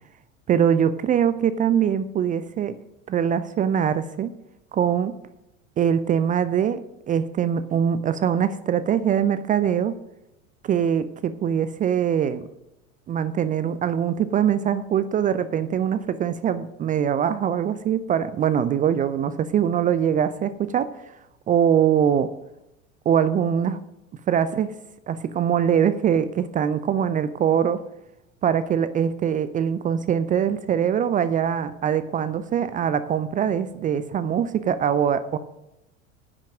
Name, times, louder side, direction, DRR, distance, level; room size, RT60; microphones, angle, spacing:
voice 1, 0.5-2.7 3.1-4.3 4.7-5.1 5.8-6.8 7.1-9.9 10.6-12.4 13.1-20.9 21.5-22.3 23.1-23.8 24.3-24.7 25.1-27.8 28.4-35.4, right 8 dB, 20° right, 13 dB, 0.4 m, -22 dB
9.9 x 6.1 x 7.4 m, 0.91 s
figure-of-eight pair, 80°, 39 cm